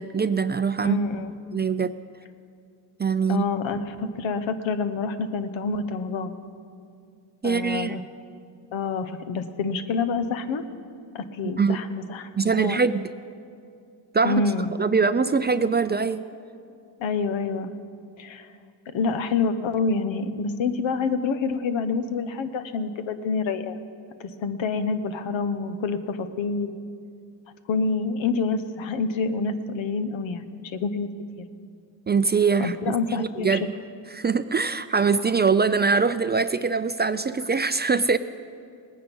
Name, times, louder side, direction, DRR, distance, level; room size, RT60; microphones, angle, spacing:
voice 1, 0.0-1.0 1.5-2.0 3.0-3.4 7.4-8.0 11.4-11.8 12.4-13.1 14.1-14.4 14.8-16.2 32.1-32.8 33.1-33.6 34.1-38.2, right 5 dB, 25° right, 12 dB, 0.3 m, -23 dB
voice 2, 0.8-1.3 3.3-6.3 7.4-8.0 8.7-10.6 11.1-12.8 14.2-14.7 17.0-17.7 18.2-18.5 18.9-23.8 24.2-26.7 27.7-31.1 31.4-31.5 32.6-33.7, left 4 dB, 75° left, 10 dB, 1.0 m, -27 dB
19.0 x 9.6 x 5.4 m, 2.3 s
cardioid pair, 65°, 46 cm